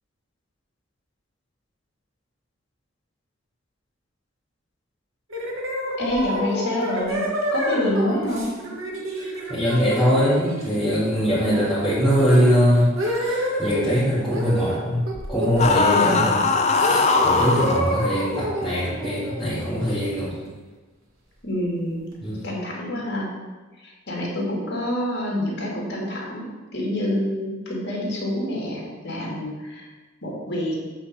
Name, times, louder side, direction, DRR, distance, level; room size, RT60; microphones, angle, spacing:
sound 1, 5.3-13.8 14.3-14.8 15.1-16.3 16.8-20.5, equal, 75° right, 1.7 m, -29 dB
voice 1, 6.0-7.2 7.5-8.5 15.9-16.4 17.6-17.9 21.4-23.3 23.8-29.9 30.2-30.8, left 1 dB, 55° left, -3 dB, 2.3 m, -27 dB
voice 2, 9.2-12.9 13.2-15.0 15.3-20.4 22.2-22.4, equal, ahead, -13 dB, 2.1 m, -22 dB
sound 2, 15.6-17.8, left 4 dB, 30° left, 0.6 m, -20 dB
8.2 x 4.1 x 6.6 m, 1.3 s
head